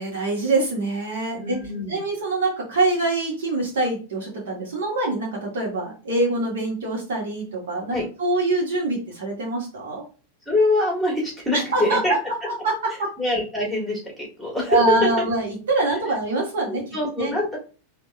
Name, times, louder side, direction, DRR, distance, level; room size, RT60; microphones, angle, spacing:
voice 1, 0.0-1.6 1.9-10.0 11.5-12.0 12.4-12.7 13.0-13.1 14.7-16.8 17.2-17.3, right 2 dB, 60° right, -3 dB, 1.4 m, -24 dB
voice 2, 1.4-2.0 7.9-8.1 10.4-12.1 13.2-15.1 16.7-17.6, left 2 dB, ahead, -2 dB, 1.7 m, -24 dB
3.7 x 2.8 x 2.5 m, 0.35 s
figure-of-eight pair, 90°, 0 cm